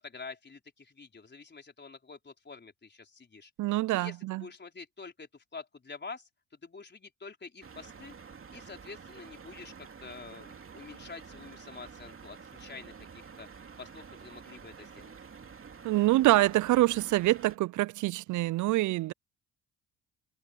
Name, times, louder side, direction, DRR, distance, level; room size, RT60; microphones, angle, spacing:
voice 1, 0.0-8.1 8.5-13.5 13.8-15.1, left 4 dB, 30° left, 4.3 m, -47 dB
voice 2, 3.6-4.4 15.8-19.1, right 17 dB, 60° right, 0.5 m, -25 dB
sound 1, 7.6-17.6, right 6 dB, 40° right, 2.7 m, -49 dB
supercardioid pair, 65°, 35 cm